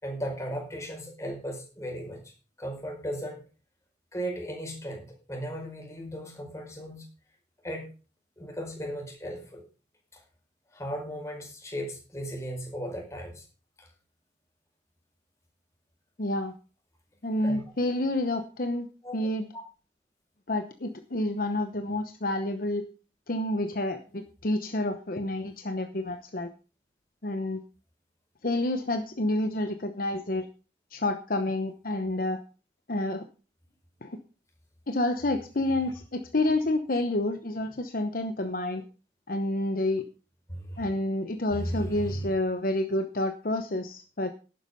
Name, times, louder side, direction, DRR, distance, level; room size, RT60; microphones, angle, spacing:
voice 1, 0.0-2.2 2.6-3.4 4.1-7.0 7.6-7.9 8.4-9.6 10.7-13.4 13.8-13.9 17.4-17.6 19.0-19.3 19.5-19.6 40.5-40.9 41.5-42.3, equal, 15° left, 1 dB, 5.0 m, -36 dB
voice 2, 16.2-16.5 17.2-18.9 19.1-19.5 20.5-22.8 23.3-26.5 27.2-27.6 28.4-30.5 30.9-32.4 32.9-33.2 34.0-34.2 34.9-38.8 39.3-40.0 40.8-44.3, left 1 dB, 50° left, 7 dB, 1.0 m, -29 dB
11.5 x 9.7 x 5.4 m, 0.35 s
head